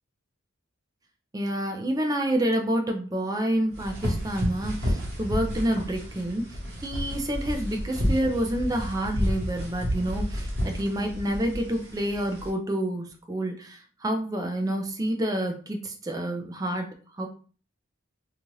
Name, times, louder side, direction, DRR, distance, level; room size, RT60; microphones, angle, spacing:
voice 1, 1.3-16.9 17.2-17.3, right 1 dB, 20° right, 4 dB, 0.4 m, -28 dB
sound 1, 3.7-12.5, equal, 60° right, 1.1 m, -31 dB
2.7 x 2.4 x 3.1 m, 0.40 s
head